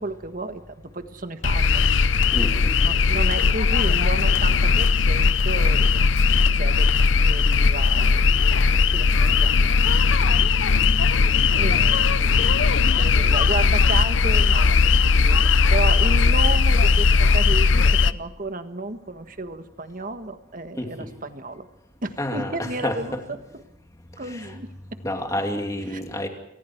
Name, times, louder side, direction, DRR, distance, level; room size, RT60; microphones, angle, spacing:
voice 1, 0.0-1.8 2.8-6.9 7.2-8.3 8.7-9.7 11.5-21.7 22.0-23.2 24.2-24.7 25.9-26.0, right 2 dB, 40° right, 8 dB, 1.6 m, -33 dB
sound 1, 1.4-18.1, left 4 dB, 70° left, 0.7 m, -18 dB
voice 2, 2.3-2.7 20.8-21.1 22.2-23.2 24.2-24.6 25.0-26.3, left 1 dB, 15° left, 3 dB, 2.8 m, -29 dB
28.5 x 24.5 x 4.7 m, 0.85 s
head